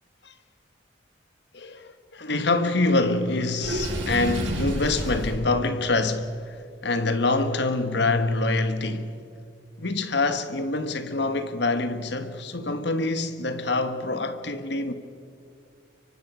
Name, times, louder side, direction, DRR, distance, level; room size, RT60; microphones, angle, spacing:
voice 1, 1.5-9.2 9.8-14.9, left 2 dB, 60° left, 1.3 m, -25 dB
Water / Sink (filling or washing), 3.6-5.4, equal, 90° right, 7.2 m, -28 dB
24.5 x 24.0 x 6.2 m
head